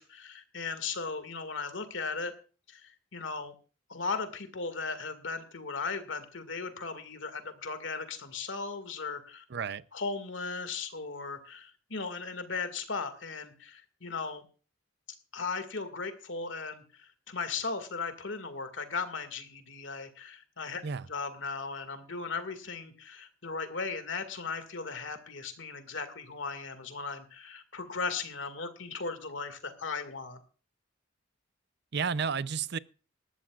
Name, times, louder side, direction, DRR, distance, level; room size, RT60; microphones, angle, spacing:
voice 1, 0.0-2.3 2.7-3.5 3.9-9.4 9.9-14.5 15.3-20.8 21.1-30.4, left 4 dB, 70° left, 2.1 m, -37 dB
voice 2, 9.5-9.8 20.8-21.1 31.9-32.8, right 6 dB, 60° right, 0.6 m, -31 dB
20.0 x 13.5 x 2.4 m
head